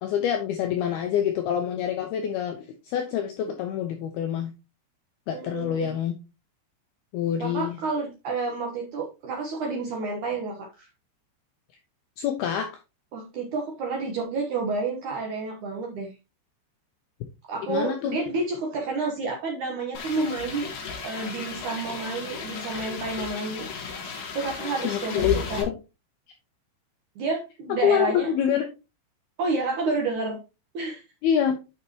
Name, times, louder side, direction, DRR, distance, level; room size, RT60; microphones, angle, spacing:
voice 1, 0.0-4.5 5.3-6.1 7.1-7.8 12.2-12.7 17.7-18.2 24.8-25.8 27.8-28.7 31.2-31.6, left 9 dB, 80° left, 4 dB, 2.3 m, -26 dB
voice 2, 5.3-6.0 7.4-10.9 13.1-16.1 17.5-20.7 21.0-23.7 24.3-25.6 27.2-28.3 29.4-30.4 30.7-31.0, right 3 dB, 80° right, 0 dB, 1.7 m, -30 dB
sound 1, 19.9-25.6, left 5 dB, 60° left, 2.5 m, -35 dB
9.8 x 5.8 x 3.0 m, 0.28 s
omnidirectional pair, 5.5 m